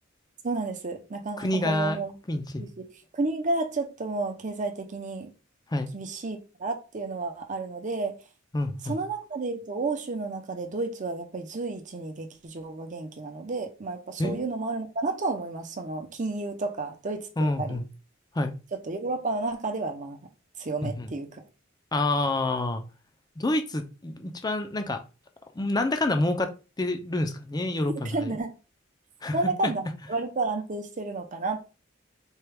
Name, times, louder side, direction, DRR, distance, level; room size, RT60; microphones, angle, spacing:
voice 1, 0.4-2.1 2.6-2.7 3.1-5.3 5.9-8.1 8.8-17.8 18.9-20.2 20.6-21.4 28.1-28.5 29.3-31.7, right 3 dB, 40° right, 0.7 m, -31 dB
voice 2, 1.4-2.0 2.3-2.7 5.7-5.9 8.5-9.0 14.2-14.4 17.4-17.8 18.3-18.5 20.8-21.1 21.9-22.8 23.4-25.0 25.6-26.5 26.8-28.4 29.2-29.4, left 2 dB, 20° left, 0.5 m, -27 dB
4.4 x 2.3 x 3.4 m
head